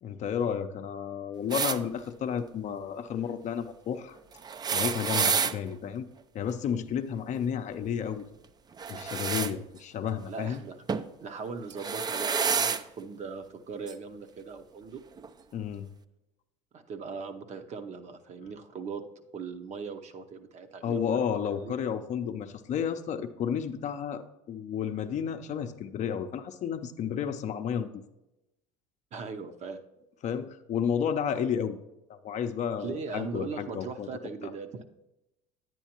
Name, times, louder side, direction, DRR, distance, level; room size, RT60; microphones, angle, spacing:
voice 1, 0.0-4.2 4.7-6.1 6.3-8.3 8.9-10.6 15.5-15.9 20.8-27.9 30.2-31.8 32.1-34.1 34.4-34.5, left 8 dB, 45° left, 8 dB, 0.6 m, -32 dB
sound 1, 1.5-1.8 4.4-5.6 8.8-9.5 10.9-11.1 11.7-12.8 13.9-14.0 15.2-15.3, right 6 dB, 25° right, 0.4 m, -28 dB
voice 2, 10.3-10.8 11.2-15.0 16.7-19.0 19.3-21.7 29.1-29.8 32.8-34.8, right 5 dB, 45° right, 7 dB, 0.8 m, -39 dB
10.0 x 9.1 x 2.9 m, 0.94 s
hypercardioid pair, 80°, 17 cm